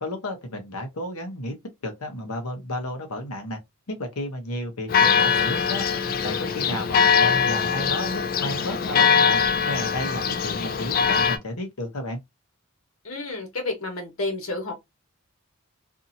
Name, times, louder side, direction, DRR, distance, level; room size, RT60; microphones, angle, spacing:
voice 1, 0.0-1.5 1.8-3.6 3.9-5.8 6.2-12.2, left 1 dB, 85° left, 0.9 m, -32 dB
Church bell, 4.9-11.4, left 6 dB, 40° left, 0.3 m, -22 dB
voice 2, 13.0-14.7, left 2 dB, 70° left, 1.4 m, -30 dB
2.7 x 2.7 x 2.6 m
head